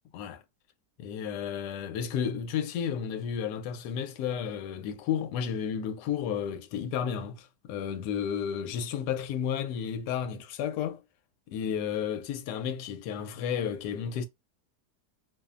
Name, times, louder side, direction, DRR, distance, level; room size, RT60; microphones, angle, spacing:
voice 1, 1.0-11.0 11.5-14.3, left 8 dB, 80° left, 1.1 m, -32 dB
2.8 x 2.1 x 2.4 m
omnidirectional pair, 1.8 m